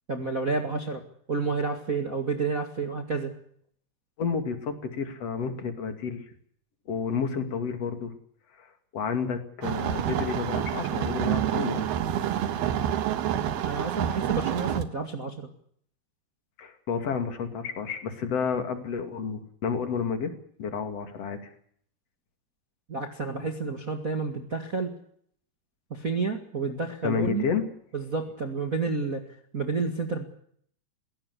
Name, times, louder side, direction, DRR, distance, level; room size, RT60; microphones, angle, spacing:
voice 1, 0.1-1.0 1.3-3.3 13.6-15.5 22.9-24.9 25.9-27.4 27.9-29.2 29.5-30.2, right 4 dB, 30° right, 5 dB, 1.6 m, -30 dB
voice 2, 4.2-6.2 6.9-8.1 8.6-8.7 8.9-11.9 16.6-20.3 20.6-21.5 27.0-27.7, left 6 dB, 45° left, 7 dB, 3.2 m, -30 dB
sound 1, 9.6-14.8, right 10 dB, 80° right, 3.4 m, -28 dB
21.5 x 17.5 x 8.4 m, 0.63 s
omnidirectional pair, 4.5 m